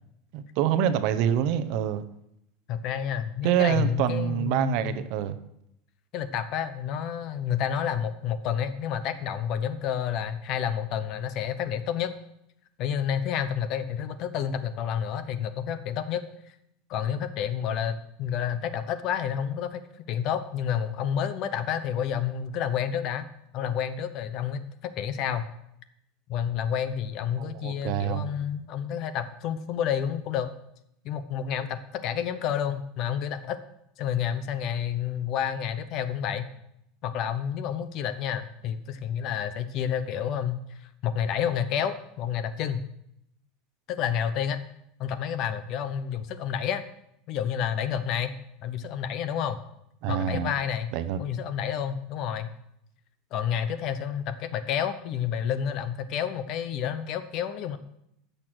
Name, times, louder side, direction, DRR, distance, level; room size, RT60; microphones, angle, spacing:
voice 1, 0.3-2.0 3.4-5.4 27.4-28.3 50.0-50.5 50.9-51.2, right 10 dB, 45° right, 11 dB, 0.8 m, -26 dB
voice 2, 2.7-5.0 6.1-12.1 12.8-16.5 16.9-23.2 23.5-25.5 26.3-30.5 31.0-33.6 34.0-36.5 37.0-42.8 43.9-44.6 45.0-46.8 47.3-48.3 48.6-49.6 50.1-50.9 51.2-52.5 53.3-57.8, left 8 dB, 35° left, 12 dB, 0.8 m, -30 dB
15.0 x 6.7 x 6.2 m, 0.79 s
supercardioid pair, 175°, 0 cm